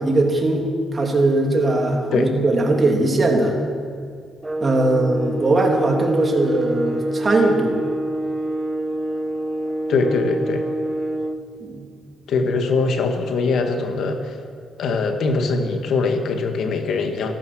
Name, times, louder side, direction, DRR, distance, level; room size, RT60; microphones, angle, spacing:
voice 1, 0.0-3.6 4.6-7.8 11.6-11.9, right 2 dB, 30° right, 1 dB, 3.0 m, -20 dB
sound 1, 4.4-11.5, right 1 dB, 10° right, 0.8 m, -26 dB
voice 2, 9.9-10.7 12.3-14.4 14.8-17.3, left 4 dB, 70° left, 5 dB, 1.7 m, -22 dB
15.0 x 13.0 x 6.3 m, 2.1 s
cardioid pair, 90°, 0 cm